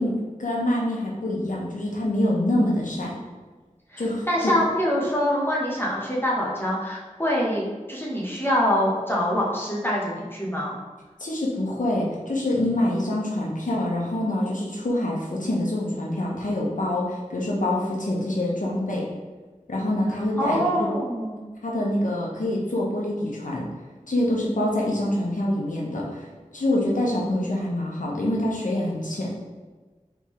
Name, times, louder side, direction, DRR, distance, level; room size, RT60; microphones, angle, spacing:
voice 1, 0.0-3.2 4.0-4.5 11.2-19.0 19.7-20.9 21.6-23.6 24.1-26.3 26.5-29.3, left 1 dB, 75° left, -4 dB, 1.0 m, -25 dB
voice 2, 3.9-7.6 7.9-10.8 20.4-21.4, equal, 15° left, -5 dB, 1.0 m, -25 dB
3.6 x 3.5 x 3.1 m, 1.3 s
wide cardioid pair, 50°, 13 cm